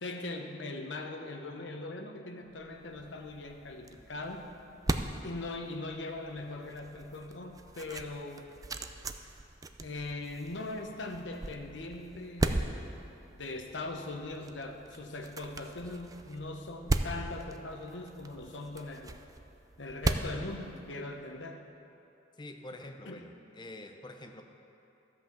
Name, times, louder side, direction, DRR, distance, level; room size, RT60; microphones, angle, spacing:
voice 1, 0.0-4.5 5.2-8.5 9.8-12.7 13.3-19.2 19.8-21.7 23.1-23.2, left 2 dB, 75° left, 4 dB, 1.0 m, -40 dB
sound 1, 2.6-21.3, right 2 dB, 20° right, 0.4 m, -38 dB
voice 2, 22.4-24.4, left 1 dB, 25° left, 5 dB, 0.6 m, -46 dB
13.0 x 5.7 x 7.3 m, 2.8 s
head